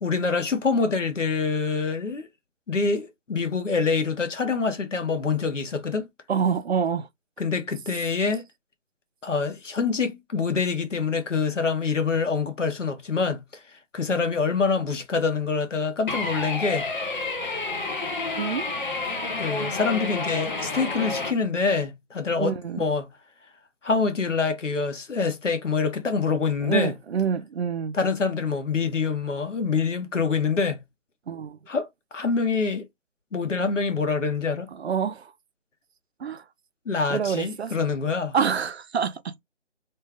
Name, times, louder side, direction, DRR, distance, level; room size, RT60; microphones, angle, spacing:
voice 1, 0.0-2.3 2.7-6.1 7.4-8.4 9.2-13.4 13.9-16.9 19.4-23.1 23.8-26.9 27.9-30.8 31.7-32.9 33.3-34.7 36.9-38.3, left 4 dB, 80° left, 1.1 m, -25 dB
voice 2, 6.3-7.1 18.4-18.6 19.0-19.1 22.4-22.9 26.6-28.0 31.3-31.6 34.7-35.3 36.2-36.4 37.1-37.7 38.3-39.4, right 7 dB, 60° right, 0.4 m, -27 dB
sound 1, 16.1-21.3, left 3 dB, 40° left, 0.9 m, -30 dB
3.2 x 2.3 x 3.3 m
figure-of-eight pair, 160°, 37 cm